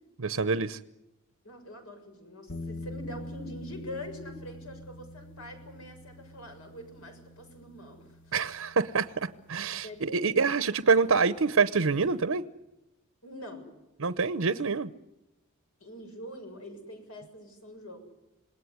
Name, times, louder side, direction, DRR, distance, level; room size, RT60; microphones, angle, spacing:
voice 1, 0.2-0.8 8.3-12.4 14.0-14.9, right 4 dB, 70° right, 13 dB, 0.8 m, -26 dB
voice 2, 1.4-8.4 9.8-10.6 13.2-13.7 14.5-14.6 15.8-18.0, left 1 dB, 75° left, 5 dB, 7.1 m, -44 dB
sound 1, 2.5-11.4, left 1 dB, 60° left, 1.4 m, -46 dB
27.5 x 19.5 x 9.6 m, 0.96 s
head